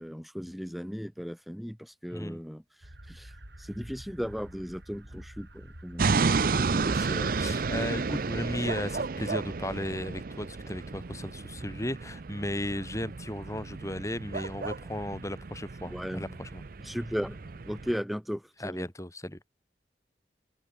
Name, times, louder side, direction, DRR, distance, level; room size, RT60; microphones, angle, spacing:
voice 1, 0.0-3.3 3.6-6.3 15.9-16.4 16.8-18.9, equal, ahead, 2.8 m, -36 dB
sound 1, 2.8-10.0, right 1 dB, 75° right, 6.0 m, -50 dB
sound 2, 6.0-17.9, right 4 dB, 50° right, 0.6 m, -32 dB
voice 2, 6.1-16.6 18.6-19.4, left 1 dB, 15° left, 2.8 m, -36 dB
head